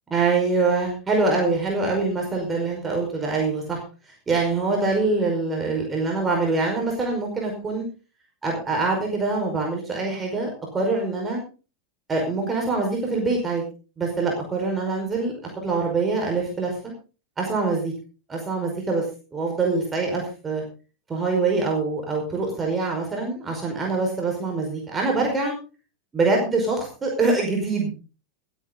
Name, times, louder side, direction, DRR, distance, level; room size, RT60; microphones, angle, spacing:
voice 1, 0.1-3.8 4.3-7.9 8.4-11.4 12.1-13.6 14.0-16.8 17.4-17.9 18.3-19.1 19.3-20.6 21.1-25.5 26.1-28.0, right 3 dB, 15° right, 0 dB, 5.2 m, -24 dB
20.5 x 9.5 x 4.0 m, 0.34 s
figure-of-eight pair, 90°, 0 cm